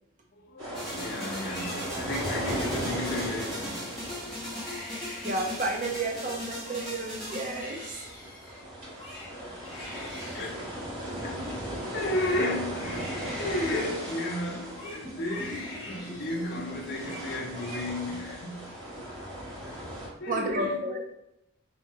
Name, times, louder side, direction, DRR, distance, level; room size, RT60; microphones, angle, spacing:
voice 1, 0.3-4.3 9.4-9.5 9.9-18.7 20.2-20.8, left 1 dB, 50° left, 0.6 m, -34 dB
sound 1, 0.6-20.1, equal, 70° right, 1.3 m, -38 dB
sound 2, 0.7-8.3 14.8-17.0, equal, ahead, 0.9 m, -39 dB
Crying sobbing, 1.4-3.5 4.0-4.2 4.4-6.1 6.5-12.2 12.6-16.6 16.8-17.2 17.5-18.2 18.6-19.2, left 1 dB, 20° left, 1.1 m, -45 dB
voice 2, 5.0-8.0 20.3-21.0, right 2 dB, 40° right, 0.5 m, -32 dB
2.8 x 2.3 x 2.8 m
head